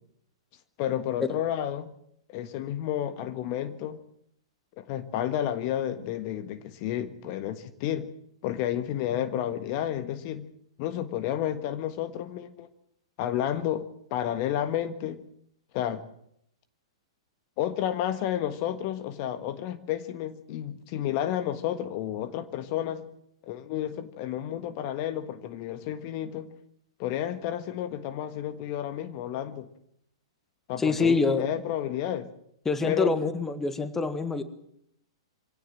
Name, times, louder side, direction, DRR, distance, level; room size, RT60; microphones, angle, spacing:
voice 1, 0.8-1.9 2.3-4.0 4.8-8.1 8.4-10.5 10.8-12.7 13.2-15.2 15.7-16.0 17.6-23.1 23.5-26.5 27.0-29.7 30.7-32.3 32.8-33.1, left 11 dB, 45° left, 11 dB, 1.5 m, -31 dB
voice 2, 30.8-31.5 32.6-34.4, left 4 dB, 10° left, 12 dB, 1.7 m, -25 dB
24.0 x 17.5 x 7.5 m, 0.73 s
hypercardioid pair, 110°, 3 cm